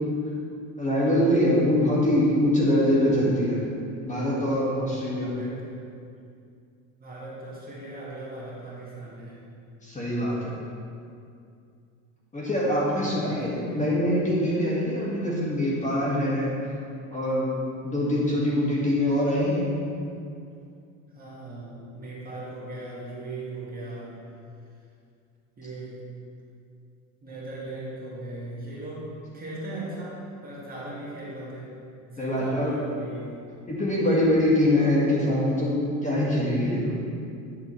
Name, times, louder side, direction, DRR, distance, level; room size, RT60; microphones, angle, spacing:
voice 1, 0.8-3.6 4.0-5.3 9.8-10.5 12.3-16.5 17.1-17.5 17.8-19.7 32.2-32.7 33.7-37.0, left 1 dB, 20° left, -6 dB, 2.0 m, -23 dB
voice 2, 5.4-5.9 7.0-9.4 12.9-13.9 21.1-24.2 25.6-26.1 27.2-31.7 32.1-33.4, right 2 dB, 20° right, -6 dB, 2.2 m, -38 dB
9.8 x 7.0 x 3.3 m, 2.4 s
supercardioid pair, 105°, 40 cm